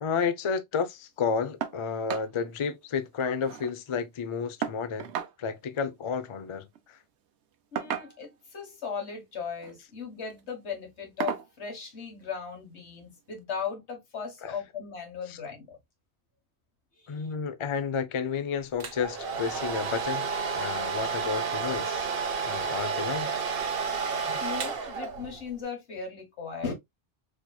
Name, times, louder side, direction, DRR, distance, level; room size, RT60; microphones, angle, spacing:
voice 1, 0.0-5.1 5.4-7.0 14.4-14.5 15.3-15.4 17.1-20.3 20.5-22.1 22.4-23.4 24.2-24.5, left 6 dB, 50° left, 0.4 m, -31 dB
sound 1, 1.6-1.8 2.1-2.3 2.7-2.8 3.1-3.7 4.6-5.4 6.6-6.8 7.8-8.4 9.5-9.8 10.2-10.4 11.2-11.5 12.8-12.9 13.4-13.5, right 8 dB, 85° right, 1.0 m, -34 dB
voice 2, 7.7-15.8 17.2-17.3 24.4-26.7, left 6 dB, 75° left, 1.6 m, -37 dB
Domestic sounds home sounds, 18.8-25.5, right 5 dB, 60° right, 0.9 m, -31 dB
4.3 x 2.9 x 2.2 m
omnidirectional pair, 1.1 m